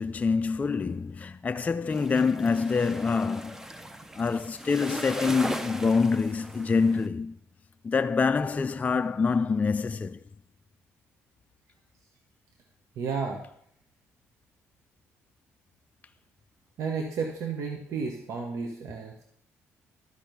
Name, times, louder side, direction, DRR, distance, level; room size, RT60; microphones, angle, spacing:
voice 1, 0.0-3.6 4.2-7.3 7.8-10.2, left 5 dB, 30° left, 0.4 m, -26 dB
sound 1, 1.9-7.1, right 1 dB, 10° right, 0.7 m, -38 dB
voice 2, 13.0-13.4 16.8-19.2, right 5 dB, 70° right, 1.1 m, -32 dB
12.5 x 4.5 x 5.2 m
supercardioid pair, 75°, 5 cm